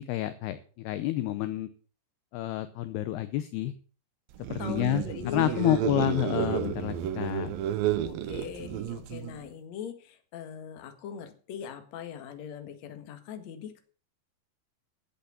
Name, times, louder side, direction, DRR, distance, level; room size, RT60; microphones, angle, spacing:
voice 1, 0.0-1.7 2.3-3.7 4.5-7.6 7.9-8.0, left 14 dB, 80° left, 12 dB, 2.4 m, -29 dB
sound 1, 4.4-9.5, right 11 dB, 90° right, 2.1 m, -31 dB
voice 2, 4.6-5.9 8.0-13.8, left 8 dB, 55° left, 6 dB, 2.1 m, -41 dB
12.0 x 8.1 x 6.9 m, 0.41 s
omnidirectional pair, 5.3 m